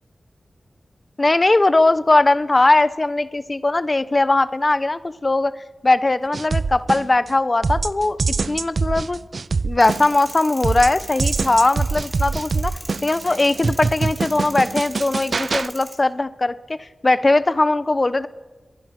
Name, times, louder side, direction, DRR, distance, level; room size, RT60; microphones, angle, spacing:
voice 1, 1.2-5.5 5.8-8.2 8.5-9.2 9.6-12.7 13.0-18.3, left 2 dB, 35° left, 14 dB, 1.1 m, -19 dB
sound 1, 6.3-7.3 7.6-10.3 10.6-15.7, right 4 dB, 65° right, 0.6 m, -24 dB
sound 2, 9.8-16.0, right 1 dB, 25° right, 4.3 m, -39 dB
23.5 x 20.0 x 6.1 m, 1.2 s
wide cardioid pair, 75°, 0 cm